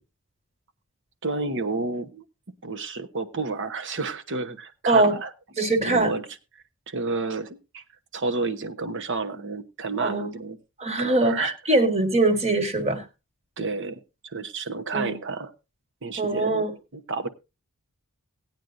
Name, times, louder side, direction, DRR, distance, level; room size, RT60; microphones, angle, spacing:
voice 1, 1.2-2.2 2.6-5.3 5.8-6.3 6.9-7.5 7.7-7.8 8.1-10.6 11.0-11.5 13.6-15.5 16.0-16.6 16.9-17.3, right 3 dB, 55° right, 10 dB, 1.0 m, -30 dB
voice 2, 5.6-6.1 10.0-10.3 10.8-13.0 14.9-15.1 16.2-16.7, right 2 dB, 30° right, 6 dB, 1.5 m, -22 dB
18.0 x 9.1 x 2.6 m, 0.27 s
head